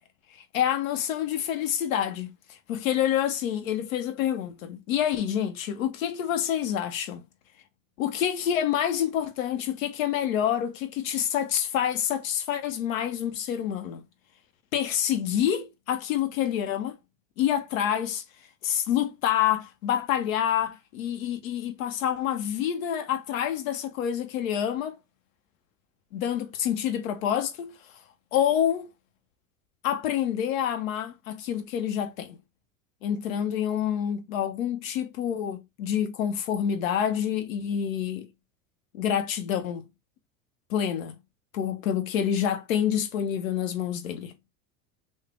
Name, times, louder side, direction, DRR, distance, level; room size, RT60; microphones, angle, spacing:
voice 1, 0.3-7.2 8.0-14.0 14.7-17.0 17.4-18.2 18.6-25.0 26.1-27.9 28.3-28.9 29.8-32.4 33.0-38.3 38.9-39.9 40.7-41.2 41.5-44.3, left 10 dB, 85° left, 0.6 m, -27 dB
3.2 x 2.0 x 3.5 m
hypercardioid pair, 90°, 39 cm